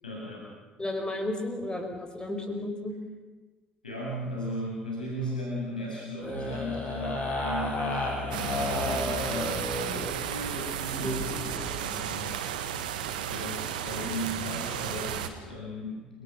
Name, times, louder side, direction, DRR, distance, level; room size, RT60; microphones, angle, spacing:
voice 1, 0.0-0.5 3.8-12.6 13.3-16.2, equal, 85° left, -5 dB, 7.1 m, -37 dB
voice 2, 0.8-2.9 11.0-11.2, left 1 dB, 20° left, 4 dB, 6.1 m, -33 dB
sound 1, 6.2-10.1 11.0-11.7, left 2 dB, 35° left, 7.7 m, -32 dB
sound 2, 8.3-15.3, right 9 dB, 70° right, 1.7 m, -33 dB
30.0 x 20.0 x 6.2 m, 1.3 s
figure-of-eight pair, 55°, 5 cm